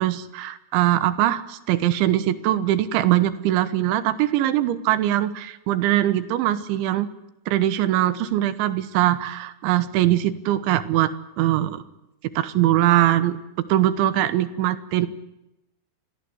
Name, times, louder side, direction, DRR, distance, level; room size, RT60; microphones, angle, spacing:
voice 1, 0.0-7.1 7.5-11.1 11.4-11.8 12.4-13.4 13.7-15.1, right 13 dB, 85° right, 12 dB, 3.5 m, -21 dB
29.0 x 22.0 x 8.0 m, 0.91 s
omnidirectional pair, 5.3 m